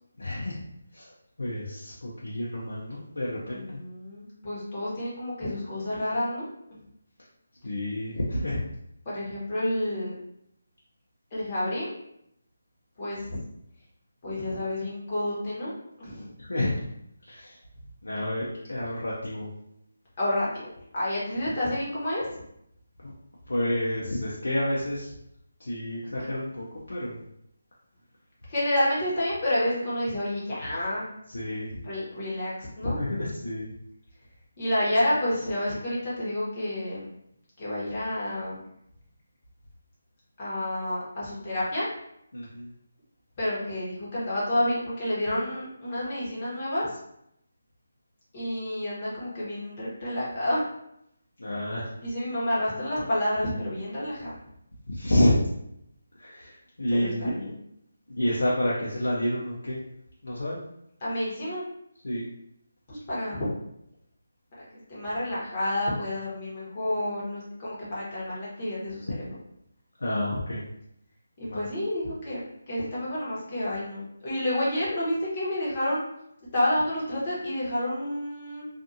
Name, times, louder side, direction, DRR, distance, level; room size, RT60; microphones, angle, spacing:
voice 1, 0.2-0.6 0.9-1.0 1.4-3.6 7.6-8.6 16.4-16.7 17.2-17.5 18.0-19.5 23.0-23.1 23.5-25.1 25.6-27.2 31.3-31.7 32.9-33.7 42.3-42.7 51.4-51.9 54.9-55.3 56.2-56.5 56.8-57.3 58.1-59.8 60.2-60.6 62.0-62.2 70.0-70.6 71.4-71.7, left 1 dB, 90° left, -6 dB, 0.6 m, -29 dB
voice 2, 3.4-6.5 9.0-10.2 11.3-11.9 13.0-13.4 14.2-15.7 16.0-16.3 20.2-20.7 20.9-22.2 28.5-31.1 31.8-33.0 34.6-37.1 37.6-38.6 40.4-41.8 43.4-47.0 48.3-50.7 52.0-54.3 56.9-57.6 61.0-61.7 62.9-63.5 64.5-69.1 71.4-72.4 72.7-76.0 76.5-78.7, left 1 dB, 30° left, -8 dB, 1.1 m, -29 dB
2.5 x 2.5 x 2.6 m, 0.77 s
figure-of-eight pair, 170°, 0 cm